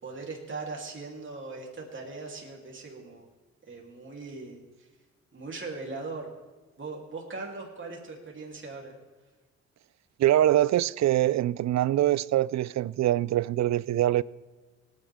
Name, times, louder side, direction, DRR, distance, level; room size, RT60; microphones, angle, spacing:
voice 1, 0.0-3.3 3.7-4.9 5.3-6.3 6.8-8.9, right 3 dB, 45° right, -1 dB, 3.3 m, -39 dB
voice 2, 10.2-14.2, right 13 dB, 70° right, 22 dB, 0.4 m, -24 dB
19.5 x 10.0 x 3.6 m, 1.3 s
cardioid pair, 75°, 29 cm